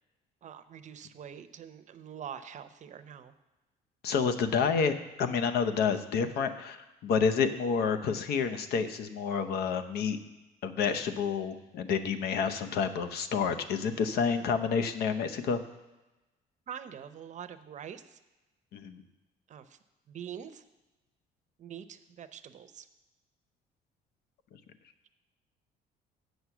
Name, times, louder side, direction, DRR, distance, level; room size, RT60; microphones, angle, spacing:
voice 1, 0.4-3.3 16.7-18.2 19.5-19.8 20.1-20.6 21.6-22.9, right 8 dB, 45° right, 10 dB, 0.6 m, -44 dB
voice 2, 4.0-10.2 10.6-15.6 18.7-19.0, left 6 dB, 70° left, 9 dB, 0.8 m, -29 dB
7.9 x 6.2 x 7.0 m, 1.1 s
cardioid pair, 110°, 17 cm